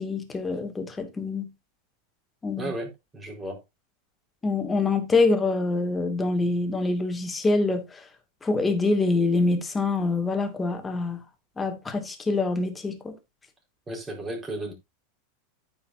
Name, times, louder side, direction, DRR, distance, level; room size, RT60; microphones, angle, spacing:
voice 1, 0.0-1.5 2.4-2.7 4.4-8.0 8.4-11.2 11.6-13.2, left 3 dB, 15° left, 2.3 m, -25 dB
voice 2, 2.6-3.6 13.9-14.7, right 1 dB, 15° right, 4.6 m, -34 dB
14.5 x 5.7 x 2.7 m
hypercardioid pair, 90°, 0 cm